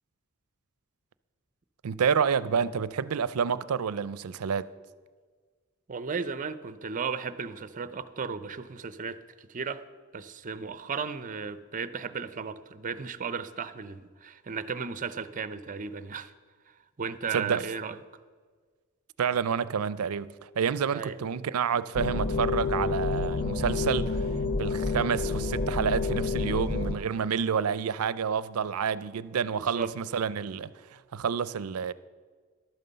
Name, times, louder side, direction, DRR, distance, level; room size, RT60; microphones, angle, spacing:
voice 1, 1.8-4.7 17.3-17.6 19.2-24.2 24.6-30.7 31.1-31.9, right 7 dB, 85° right, 0.5 m, -29 dB
voice 2, 5.9-9.9 10.1-16.3 16.7-18.0 20.9-21.2 29.6-29.9, right 5 dB, 35° right, 0.6 m, -35 dB
sound 1, 21.9-27.0, left 3 dB, 40° left, 0.7 m, -29 dB
12.0 x 9.3 x 6.8 m
head